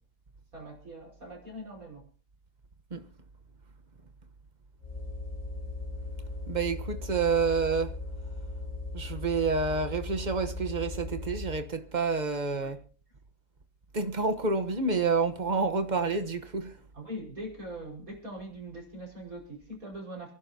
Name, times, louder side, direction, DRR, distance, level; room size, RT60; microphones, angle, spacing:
voice 1, 0.5-2.0 12.6-12.7 16.9-20.3, right 1 dB, 55° right, 5.6 m, -42 dB
sound 1, 4.8-11.7, left 2 dB, 25° left, 1.0 m, -38 dB
voice 2, 6.5-8.0 8.9-12.8 13.9-16.8, right 4 dB, 30° right, 1.0 m, -28 dB
29.0 x 11.0 x 2.8 m
omnidirectional pair, 1.8 m